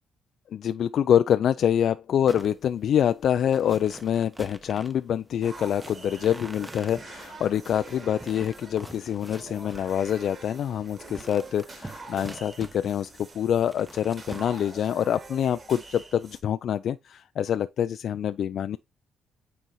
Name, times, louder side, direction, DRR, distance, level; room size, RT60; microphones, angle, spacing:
voice 1, 0.5-18.8, left 9 dB, 65° left, 0.3 m, -26 dB
sound 1, 2.3-15.0, right 1 dB, 10° right, 0.8 m, -46 dB
sound 2, 5.4-16.4, right 3 dB, 40° right, 3.0 m, -45 dB
9.2 x 3.9 x 3.1 m
cardioid pair, 90°, 0 cm